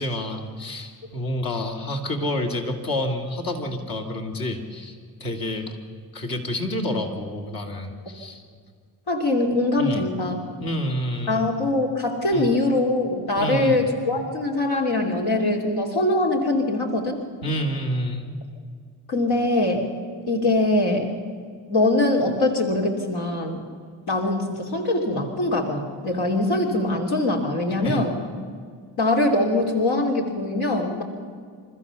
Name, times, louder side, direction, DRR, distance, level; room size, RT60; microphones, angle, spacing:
voice 1, 0.0-5.8 6.1-8.4 9.8-10.1 10.6-11.4 12.3-12.5 13.4-13.8 17.4-18.2 27.8-28.0, left 1 dB, 60° left, 2 dB, 3.1 m, -28 dB
voice 2, 9.1-10.4 11.3-17.2 19.1-19.9 20.3-21.1 21.7-23.6 24.1-28.2 29.0-31.0, left 2 dB, 80° left, 0 dB, 2.9 m, -22 dB
28.0 x 14.0 x 7.0 m, 2.1 s
cardioid pair, 65°, 39 cm